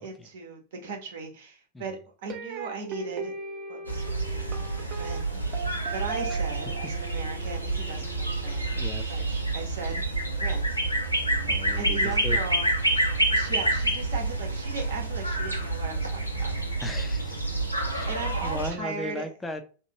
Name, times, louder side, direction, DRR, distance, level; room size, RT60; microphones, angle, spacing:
voice 1, 0.0-3.3 3.7-4.6 4.9-8.7 9.1-10.0 10.4-10.7 11.8-12.7 13.3-16.5 18.0-19.3, right 4 dB, 55° right, 2 dB, 1.0 m, -38 dB
sound 1, 2.3-9.4, right 5 dB, 35° right, 0.6 m, -39 dB
sound 2, 3.8-18.7, right 2 dB, 90° right, 0.7 m, -28 dB
voice 2, 8.7-9.1 11.5-12.4 16.8-17.4 17.9-19.6, left 1 dB, 10° left, 6 dB, 0.6 m, -37 dB
3.0 x 2.5 x 2.8 m, 0.38 s
figure-of-eight pair, 90°, 0 cm